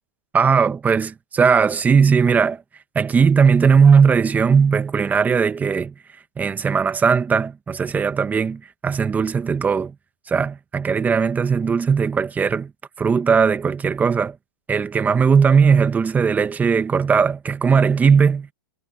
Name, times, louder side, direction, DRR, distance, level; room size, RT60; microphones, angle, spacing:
voice 1, 0.3-2.6 2.9-5.9 6.4-9.9 10.3-12.7 13.0-14.4 14.7-18.5, right 6 dB, 15° right, 1.5 m, -18 dB
hypercardioid pair, 125°, 10 cm